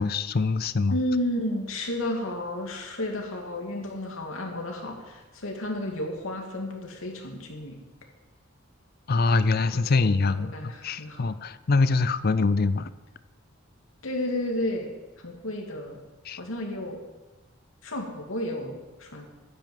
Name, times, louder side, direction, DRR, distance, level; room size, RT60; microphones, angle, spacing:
voice 1, 0.0-1.0 9.1-12.9 16.2-16.4, left 3 dB, 45° left, 15 dB, 0.5 m, -24 dB
voice 2, 0.9-7.8 9.6-10.0 10.4-11.3 11.7-11.9 14.0-14.9 15.2-16.0 16.4-17.0 17.8-19.3, left 1 dB, 80° left, 1 dB, 2.6 m, -32 dB
11.0 x 9.9 x 7.5 m, 1.2 s
head